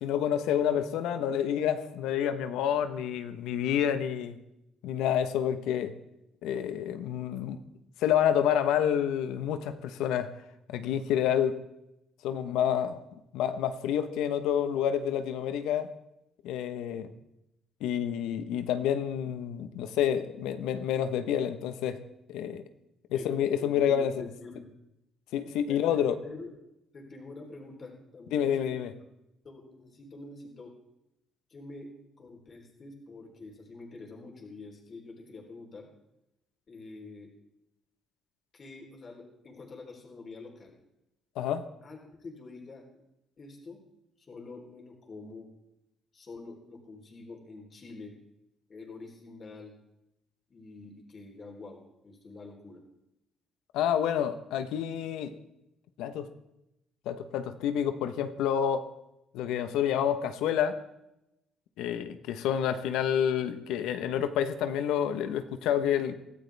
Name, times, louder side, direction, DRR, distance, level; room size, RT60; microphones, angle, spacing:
voice 1, 0.0-4.4 4.8-6.0 6.4-7.6 8.0-10.3 10.7-11.6 12.2-13.0 13.3-15.9 16.4-17.1 17.8-22.0 22.3-22.6 23.1-24.2 25.3-26.1 28.3-28.9 41.3-41.7 53.7-55.3 56.0-56.3 57.0-58.9 59.3-60.8 61.8-66.2, left 9 dB, 90° left, 10 dB, 1.1 m, -28 dB
voice 2, 23.6-24.7 25.7-26.5 26.9-28.8 29.4-30.7 31.5-31.9 32.2-35.9 36.7-37.3 38.5-40.8 41.8-43.0 43.4-43.8 44.2-45.5 46.1-48.1 48.7-49.7 50.5-52.8, left 3 dB, 40° left, 0 dB, 3.9 m, -46 dB
23.0 x 14.5 x 3.5 m, 0.88 s
cardioid pair, 110°, 0 cm